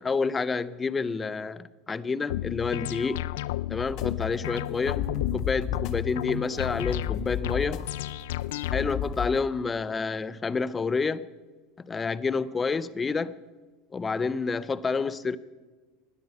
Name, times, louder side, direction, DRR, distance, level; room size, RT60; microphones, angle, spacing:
voice 1, 0.0-3.3 3.7-5.1 5.3-7.8 8.7-11.3 11.9-13.4 13.9-15.4, left 4 dB, 20° left, 0.7 m, -29 dB
sound 1, 2.3-9.1, left 14 dB, 80° left, 0.5 m, -32 dB
sound 2, 3.9-9.4, left 8 dB, 55° left, 1.4 m, -35 dB
20.0 x 12.5 x 5.5 m
supercardioid pair, 105°, 0 cm